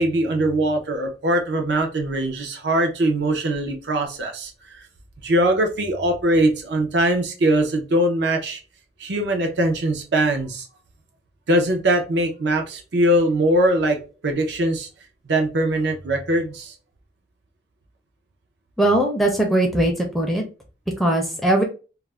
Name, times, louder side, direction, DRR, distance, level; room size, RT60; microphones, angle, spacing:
voice 1, 0.0-4.8 5.2-8.6 9.0-10.7 11.5-14.9 15.3-16.7, right 1 dB, 75° right, 4 dB, 0.6 m, -21 dB
voice 2, 18.8-20.4 21.0-21.6, right 1 dB, ahead, 1 dB, 0.4 m, -20 dB
2.4 x 2.0 x 3.2 m, 0.33 s
head